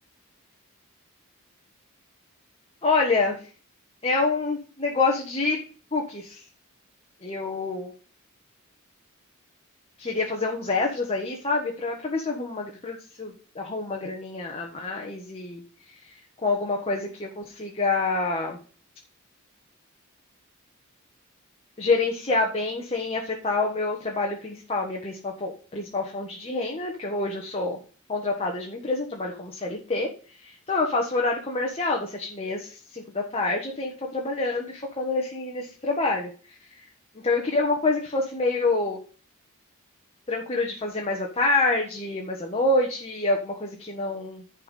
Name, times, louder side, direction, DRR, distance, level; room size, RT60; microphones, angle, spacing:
voice 1, 2.8-3.4 4.0-5.6 5.9-6.4 7.2-7.9 10.0-15.6 16.4-18.6 21.8-27.8 28.1-30.1 30.4-36.3 37.2-39.0 40.3-44.6, left 3 dB, 30° left, 0 dB, 1.5 m, -27 dB
11.0 x 4.7 x 5.4 m, 0.39 s
head